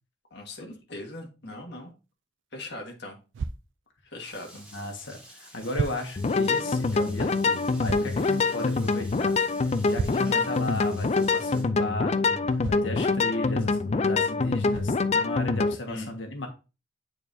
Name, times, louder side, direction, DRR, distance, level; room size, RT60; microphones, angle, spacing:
voice 1, 0.3-1.9 2.5-3.2 4.1-4.6 10.3-10.5 15.9-16.1, left 1 dB, 60° left, 0 dB, 1.7 m, -39 dB
sound 1, 3.3-3.6 5.0-5.1 5.7-6.0 7.8-8.1 9.9-10.3 12.6-12.9 13.9-14.0 14.7-14.9, right 5 dB, 85° right, 0.4 m, -32 dB
Rain, 4.3-11.6, equal, 5° right, 2.1 m, -50 dB
voice 2, 4.5-9.4 9.6-16.5, left 1 dB, 90° left, 3 dB, 1.6 m, -35 dB
sound 2, 6.2-15.8, left 3 dB, 35° left, 0.4 m, -25 dB
8.8 x 4.5 x 2.7 m, 0.31 s
head